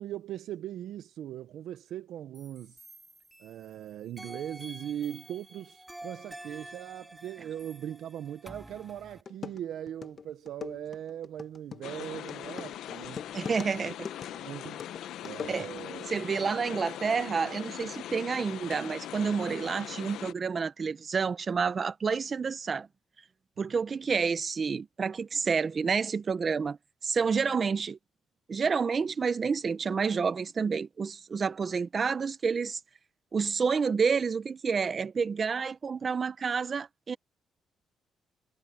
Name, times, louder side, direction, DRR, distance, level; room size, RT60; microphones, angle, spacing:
voice 1, 0.0-2.8 3.4-13.2 13.9-14.0 14.3-14.8 15.2-16.0, right 11 dB, 75° right, 0.9 m, -40 dB
sound 1, 2.3-3.7 4.2-9.2, right 1 dB, 10° right, 3.0 m, -48 dB
sound 2, 8.8-8.9 9.3-16.0, left 6 dB, 45° left, 1.3 m, -42 dB
sound 3, 11.8-20.3, left 12 dB, 80° left, 1.1 m, -41 dB
voice 2, 13.3-14.1 15.4-15.7 16.1-22.9 23.6-26.8 27.0-28.0 28.5-32.8 33.3-37.2, right 5 dB, 40° right, 0.8 m, -29 dB
cardioid pair, 90°, 0 cm